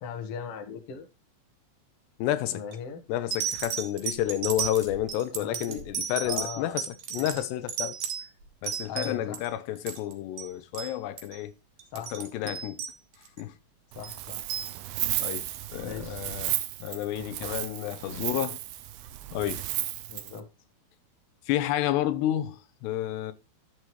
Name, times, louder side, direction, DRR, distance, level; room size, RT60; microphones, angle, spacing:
voice 1, 0.0-1.1 2.5-3.0 5.4-5.9 6.2-6.8 7.2-7.3 8.8-9.4 11.9-12.1 13.9-14.4 15.8-16.4 20.1-20.5, left 6 dB, 55° left, 1.8 m, -39 dB
voice 2, 2.2-2.6 3.1-6.8 7.1-8.0 8.6-11.5 12.1-12.8 13.4-13.5 15.2-15.5 15.7-18.6 19.3-19.6 21.5-23.3, left 13 dB, 85° left, 3.0 m, -30 dB
sound 1, 2.5-2.7 3.3-9.5 9.8-10.5 10.7-10.9 11.2-11.4 11.8-13.4 14.0-14.7 15.5-15.6, right 8 dB, 55° right, 3.2 m, -34 dB
Wind, 13.9-20.4, right 15 dB, 75° right, 2.4 m, -34 dB
12.0 x 7.8 x 3.2 m
omnidirectional pair, 4.8 m